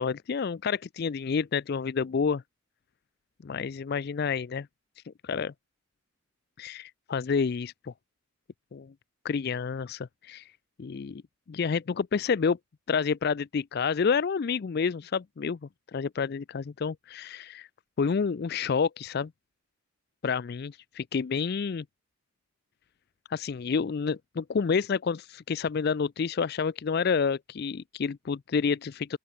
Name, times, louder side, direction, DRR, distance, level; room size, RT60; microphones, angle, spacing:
voice 1, 0.0-2.4 3.4-4.7 5.1-5.5 6.6-7.9 8.7-8.9 9.2-10.5 10.8-11.2 11.5-12.6 12.9-15.6 15.9-17.7 18.0-19.3 20.2-21.8 23.3-29.2, left 5 dB, 45° left, 0.4 m, -29 dB
open air
head